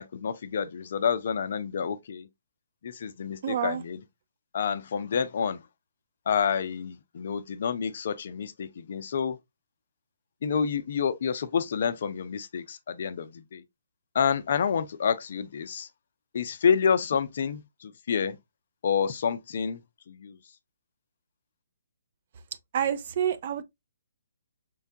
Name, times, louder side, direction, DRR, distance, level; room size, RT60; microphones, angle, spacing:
voice 1, 0.0-2.3 2.8-4.0 4.5-5.6 6.3-9.4 10.4-13.6 14.1-15.9 16.3-18.4 18.8-19.8 20.1-20.4, left 7 dB, 55° left, 0.4 m, -28 dB
voice 2, 3.4-3.8 22.7-23.6, right 9 dB, 45° right, 0.5 m, -28 dB
4.5 x 2.2 x 2.5 m
hypercardioid pair, 145°, 0 cm